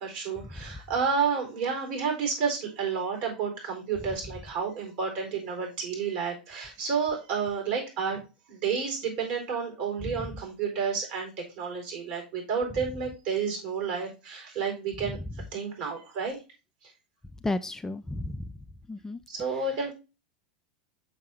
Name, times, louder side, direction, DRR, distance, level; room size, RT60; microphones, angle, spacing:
voice 1, 0.0-8.2 8.5-15.2 15.5-16.4 16.8-16.9 19.3-19.9, right 6 dB, 60° right, 2 dB, 4.2 m, -30 dB
voice 2, 17.4-18.5 18.9-19.2 19.5-19.6, left 2 dB, 10° left, 10 dB, 0.4 m, -33 dB
6.4 x 5.7 x 3.7 m, 0.30 s
hypercardioid pair, 90°, 4 cm